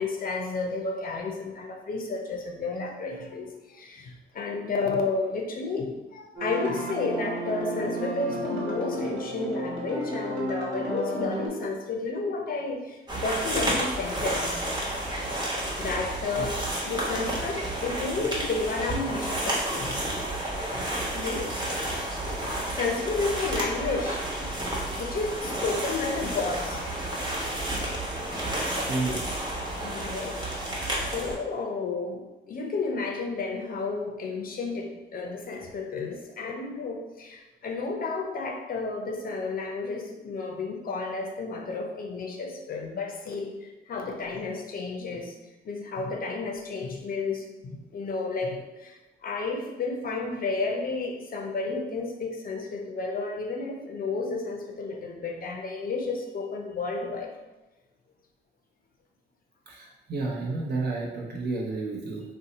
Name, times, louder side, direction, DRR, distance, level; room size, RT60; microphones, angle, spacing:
voice 1, 0.0-14.6 15.7-20.0 20.7-20.9 21.1-21.5 22.4-24.5 24.9-26.9 29.8-30.5 31.0-45.3 45.6-57.3 61.3-61.4, left 3 dB, 45° left, 2 dB, 0.5 m, -32 dB
sound 1, 6.4-11.5, equal, 75° right, 1.3 m, -32 dB
sound 2, 13.1-31.4, right 1 dB, 20° right, 1.0 m, -31 dB
voice 2, 28.9-29.2 59.7-62.2, right 3 dB, 55° right, -2 dB, 0.9 m, -31 dB
2.7 x 2.1 x 4.0 m, 1.1 s
cardioid pair, 90°, 20 cm